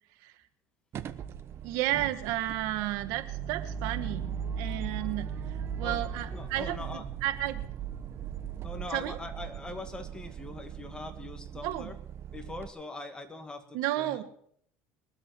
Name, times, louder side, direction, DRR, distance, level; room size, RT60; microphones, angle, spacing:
sound 1, 0.9-12.7, right 7 dB, 45° right, 1.0 m, -38 dB
voice 1, 1.6-7.6 8.9-9.2 11.6-11.9 13.7-14.2, right 14 dB, 75° right, 10 dB, 1.3 m, -33 dB
voice 2, 5.8-7.1 8.6-12.0 12.3-14.2, left 2 dB, 15° left, 7 dB, 2.1 m, -42 dB
21.5 x 8.0 x 6.1 m, 0.64 s
supercardioid pair, 105°, 6 cm